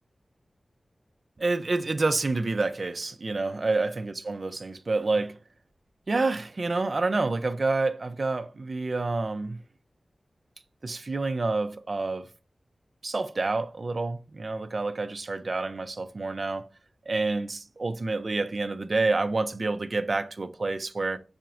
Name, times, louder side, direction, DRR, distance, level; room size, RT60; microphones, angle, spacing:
voice 1, 1.4-5.3 6.1-9.6 10.8-12.3 13.0-16.7 17.1-21.2, right 3 dB, 55° right, 0.5 m, -28 dB
5.0 x 4.4 x 2.4 m
wide cardioid pair, 80°, 0 cm